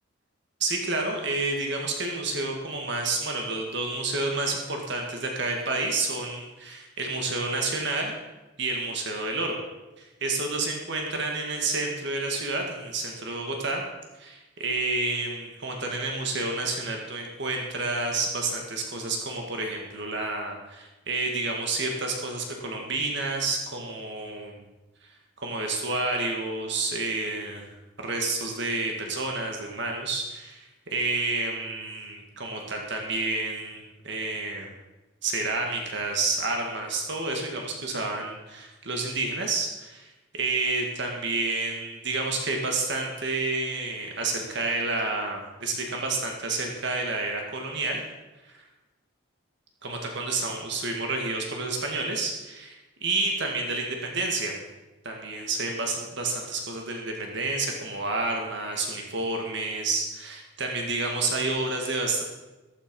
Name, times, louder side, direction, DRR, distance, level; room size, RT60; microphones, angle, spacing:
voice 1, 0.6-8.2 8.6-9.6 10.0-13.8 14.2-24.6 25.4-27.6 28.0-30.6 30.9-34.7 35.2-48.0 48.4-48.5 49.8-54.5 55.0-62.2, right 3 dB, 55° right, 1 dB, 2.1 m, -29 dB
14.5 x 13.5 x 5.5 m, 1.1 s
head